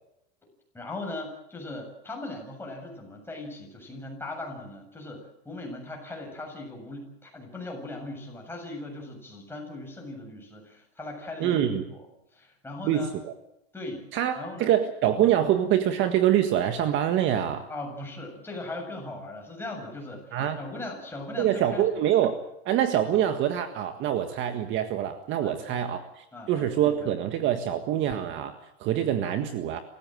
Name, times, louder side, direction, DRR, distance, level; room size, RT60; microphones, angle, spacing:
voice 1, 0.7-12.0 12.3-13.1 13.7-14.1 14.4-14.7 17.7-21.8 25.4-26.0 26.3-26.9, left 2 dB, 5° left, 0 dB, 7.5 m, -39 dB
voice 2, 11.4-11.8 12.8-13.3 14.1-17.7 20.3-20.6 21.4-22.3 22.7-29.8, right 11 dB, 40° right, 8 dB, 1.7 m, -25 dB
27.5 x 15.5 x 7.8 m, 0.83 s
supercardioid pair, 140°, 31 cm